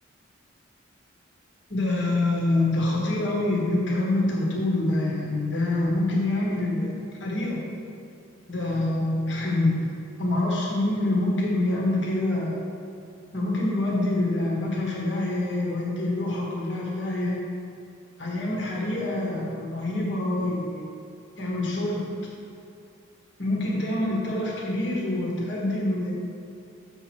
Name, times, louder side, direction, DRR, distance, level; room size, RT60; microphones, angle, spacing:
voice 1, 1.7-7.6 8.5-9.7 10.2-12.6 13.3-17.4 18.2-20.8 21.4-22.0 23.4-26.1, left 2 dB, 60° left, -3 dB, 1.6 m, -26 dB
6.8 x 4.4 x 6.3 m, 2.7 s
head